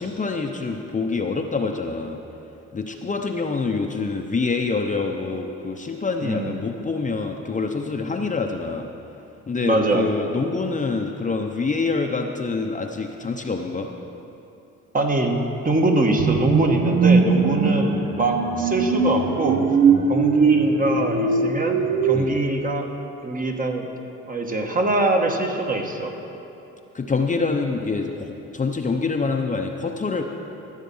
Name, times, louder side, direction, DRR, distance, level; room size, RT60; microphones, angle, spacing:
voice 1, 0.0-2.2 2.7-8.9 9.5-13.9 22.1-22.4 26.9-30.2, left 4 dB, 25° left, 3 dB, 0.7 m, -26 dB
voice 2, 6.2-6.5 9.6-10.0 14.9-15.4 15.6-19.6 20.1-22.9 23.2-23.9 24.3-26.1, right 2 dB, 30° right, 2 dB, 1.3 m, -23 dB
sound 1, 16.2-22.2, right 5 dB, 75° right, 0.9 m, -20 dB
14.5 x 7.3 x 5.5 m, 2.9 s
cardioid pair, 90°, 30 cm